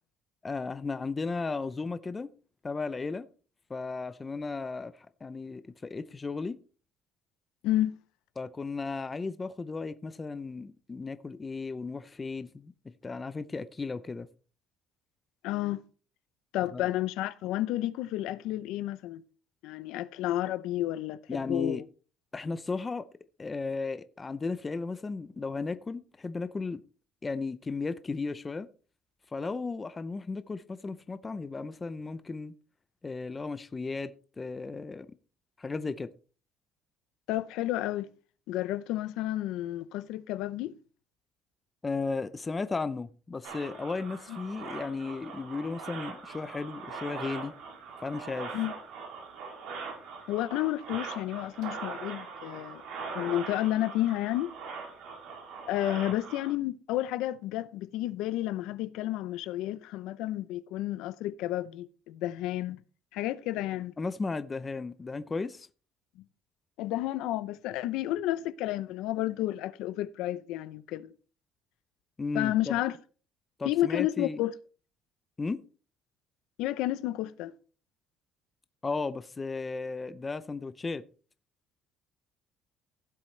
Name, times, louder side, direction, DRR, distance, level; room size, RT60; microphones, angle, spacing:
voice 1, 0.4-2.3 2.6-3.3 3.7-6.6 8.4-12.7 13.0-14.3 16.7-16.9 21.3-21.8 22.3-23.1 23.4-26.8 27.2-28.7 29.3-32.5 33.0-35.1 35.6-36.1 41.8-47.5 48.0-48.5 64.0-65.7 72.2-72.8 73.6-74.4 75.4-75.6 78.8-81.0, left 4 dB, 15° left, 0.5 m, -35 dB
voice 2, 7.6-8.0 15.4-15.8 16.5-19.2 19.6-21.8 37.3-38.1 38.5-40.8 44.3-44.4 48.5-48.7 50.3-52.8 53.1-54.5 55.7-62.8 63.1-63.9 66.8-71.1 72.3-73.0 73.6-74.5 76.6-77.5, left 14 dB, 80° left, 0.6 m, -31 dB
sound 1, 43.4-56.5, right 5 dB, 75° right, 4.1 m, -41 dB
16.0 x 7.5 x 3.3 m
cardioid pair, 155°, 0 cm